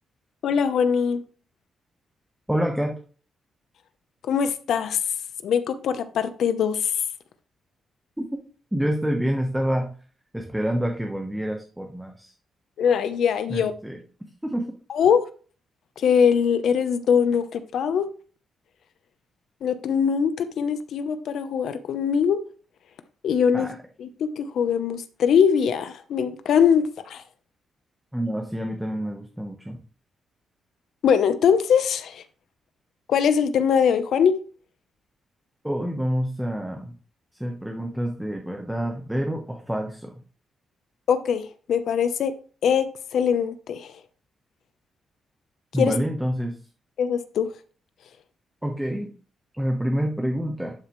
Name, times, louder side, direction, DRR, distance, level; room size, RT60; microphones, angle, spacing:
voice 1, 0.4-1.2 4.2-5.0 5.4-7.0 12.8-13.7 14.9-15.3 16.0-18.1 19.6-22.4 23.2-27.2 31.0-32.2 33.1-34.4 41.1-42.3 42.6-43.9 45.7-45.9 47.0-47.5, left 7 dB, 70° left, 11 dB, 0.8 m, -22 dB
voice 2, 2.5-2.9 8.2-8.3 8.7-9.9 10.3-12.3 13.5-14.0 14.4-14.7 23.5-23.7 28.1-29.8 35.6-36.9 37.4-40.1 45.7-46.5 48.6-49.1 49.6-50.7, equal, 5° right, 2 dB, 1.1 m, -27 dB
11.5 x 6.7 x 3.2 m, 0.40 s
wide cardioid pair, 155°, 0 cm